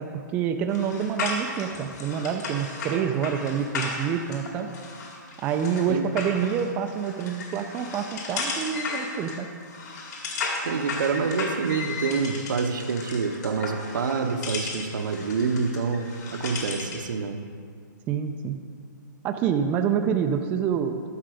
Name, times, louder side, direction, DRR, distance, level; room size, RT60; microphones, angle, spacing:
voice 1, 0.0-4.7 5.4-9.5 18.1-18.6 19.2-21.1, right 7 dB, 15° right, 6 dB, 0.3 m, -27 dB
sound 1, 0.7-17.1, left 3 dB, 60° left, 2.2 m, -35 dB
voice 2, 10.6-17.4, right 5 dB, 75° right, 7 dB, 0.9 m, -27 dB
11.0 x 6.7 x 4.9 m, 2.1 s
hypercardioid pair, 155°, 10 cm